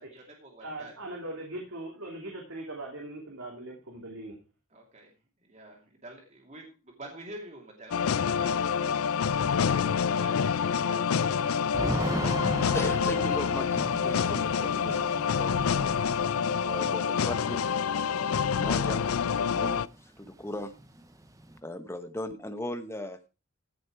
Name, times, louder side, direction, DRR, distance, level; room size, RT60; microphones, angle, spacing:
voice 1, 0.0-0.9 4.7-5.1 5.4-8.9 9.2-10.3 10.6-11.7, right 1 dB, 35° right, 0 dB, 2.7 m, -47 dB
voice 2, 0.6-4.3, right 1 dB, 75° right, 0 dB, 2.9 m, -40 dB
sound 1, 7.9-19.9, left 7 dB, 85° left, 0.4 m, -27 dB
Thunder / Rain, 11.7-19.6 19.9-20.0 20.2-21.6, right 1 dB, 15° right, 0.7 m, -38 dB
voice 3, 12.7-15.1 15.4-15.9 16.6-17.8 18.6-20.7 21.6-23.3, left 1 dB, 10° left, 9 dB, 1.0 m, -38 dB
15.0 x 6.5 x 4.7 m, 0.33 s
head